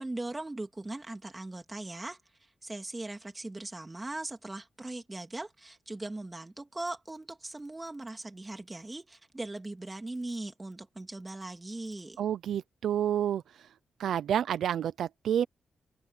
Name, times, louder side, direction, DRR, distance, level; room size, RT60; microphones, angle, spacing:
voice 1, 0.0-2.2 2.6-12.2, right 2 dB, 20° right, 2.8 m, -39 dB
voice 2, 12.2-13.7 14.0-15.5, right 9 dB, 85° right, 0.5 m, -29 dB
cardioid pair, 115°, 0 cm